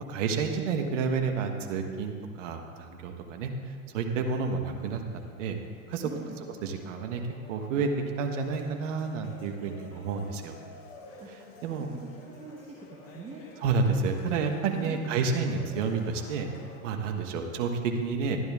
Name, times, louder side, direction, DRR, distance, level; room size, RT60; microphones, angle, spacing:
voice 1, 0.1-2.1 2.4-3.5 3.9-5.6 5.9-6.1 6.5-7.2 7.5-7.9 8.2-10.6 11.6-11.9 13.6-16.5 16.8-18.4, right 5 dB, 60° right, 4 dB, 1.5 m, -30 dB
sound 1, 4.6-16.8, left 2 dB, 30° left, 2.1 m, -52 dB
voice 2, 6.0-6.4 11.2-11.3 11.7-13.4 14.7-15.0, right 4 dB, 15° right, -3 dB, 1.2 m, -44 dB
12.5 x 10.5 x 3.6 m, 2.1 s
hypercardioid pair, 110°, 43 cm